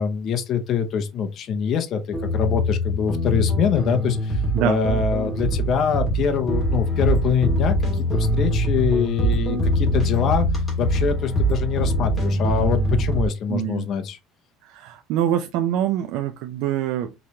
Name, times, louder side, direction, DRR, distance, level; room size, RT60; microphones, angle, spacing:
voice 1, 0.0-10.5 10.8-14.2, left 7 dB, 45° left, 0.6 m, -24 dB
sound 1, 2.1-13.3, equal, 10° left, 2.0 m, -23 dB
voice 2, 13.5-13.9 14.6-17.1, right 11 dB, 70° right, 0.5 m, -24 dB
5.0 x 3.1 x 2.8 m
cardioid pair, 145°, 0 cm